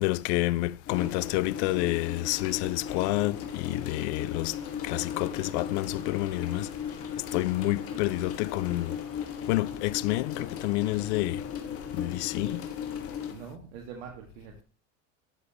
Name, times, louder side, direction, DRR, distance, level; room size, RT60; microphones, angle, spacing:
voice 1, 0.0-4.6 4.8-6.7 7.3-9.0 9.5-11.4 11.9-12.6, left 19 dB, 60° left, 0.5 m, -29 dB
sound 1, 0.9-13.3, left 8 dB, 35° left, 1.6 m, -37 dB
Alarm, 3.8-11.7, left 4 dB, 20° left, 3.1 m, -58 dB
voice 2, 7.9-8.2 13.3-14.6, right 7 dB, 65° right, 1.8 m, -44 dB
12.0 x 6.9 x 2.9 m
hypercardioid pair, 100°, 38 cm